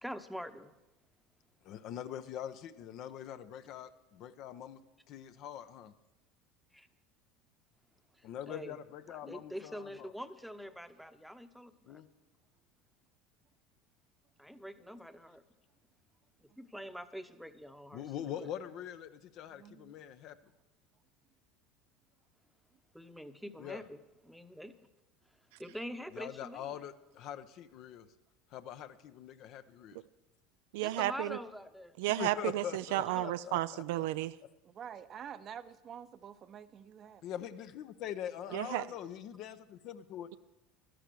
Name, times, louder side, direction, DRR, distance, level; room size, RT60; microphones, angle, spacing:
voice 1, 0.0-0.7 6.7-6.9 8.1-8.8 9.1-12.0 14.4-15.4 16.4-18.0 18.3-18.5 22.9-24.8 25.3-26.8 30.8-32.0 32.3-33.3 38.6-39.0, equal, ahead, 10 dB, 0.9 m, -45 dB
voice 2, 1.6-4.8 5.1-5.9 8.2-10.1 11.9-12.1 17.9-20.4 23.6-23.8 26.1-28.1 28.5-30.0 32.1-34.0 37.2-40.3, left 10 dB, 55° left, 11 dB, 0.8 m, -43 dB
voice 3, 19.5-19.9 34.6-37.2, right 8 dB, 40° right, 12 dB, 0.7 m, -48 dB
voice 4, 30.7-31.4 32.0-34.4 38.5-38.9, right 16 dB, 70° right, 14 dB, 0.3 m, -33 dB
12.5 x 11.0 x 6.3 m, 0.99 s
hypercardioid pair, 75°, 0 cm